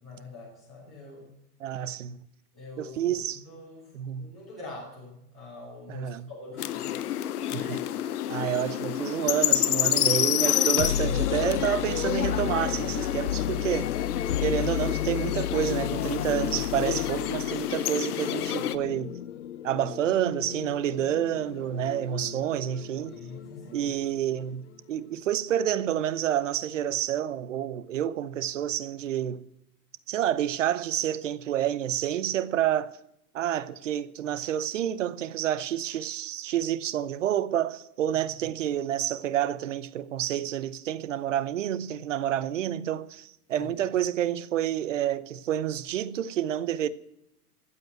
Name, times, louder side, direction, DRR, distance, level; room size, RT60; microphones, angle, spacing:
voice 1, 0.0-1.2 2.5-3.9 4.2-6.9 7.4-7.7 21.8-21.9 23.1-23.9 43.6-43.7, left 2 dB, 5° right, 0.4 m, -44 dB
voice 2, 1.6-2.2 2.8-3.4 3.9-4.3 5.9-6.3 7.5-7.9 8.3-13.9 14.4-19.2 19.6-23.2 23.7-29.4 30.1-32.9 33.3-46.9, right 10 dB, 55° right, 0.8 m, -29 dB
sound 1, 6.6-18.8, left 12 dB, 80° left, 0.9 m, -29 dB
sound 2, 10.5-24.3, left 11 dB, 50° left, 0.5 m, -33 dB
15.5 x 8.1 x 9.2 m
hypercardioid pair, 180°, 45 cm